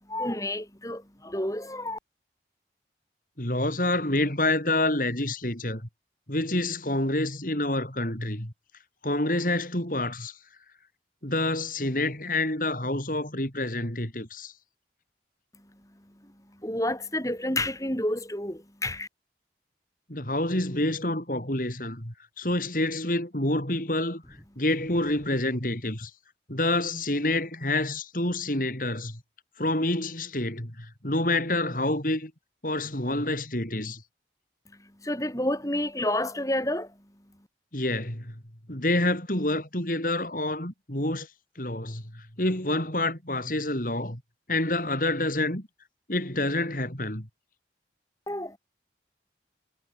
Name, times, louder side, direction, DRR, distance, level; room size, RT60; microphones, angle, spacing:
voice 1, 0.1-2.0 16.6-19.1 35.0-36.9 48.3-48.6, left 1 dB, 20° left, 6.0 m, -29 dB
voice 2, 3.4-5.9 6.3-8.5 9.0-10.4 11.2-14.5 20.1-26.1 26.5-29.2 29.6-32.3 32.6-34.0 37.7-38.4 38.7-41.3 41.6-44.2 44.5-45.7 46.1-47.3, left 1 dB, 50° left, 5.2 m, -28 dB
head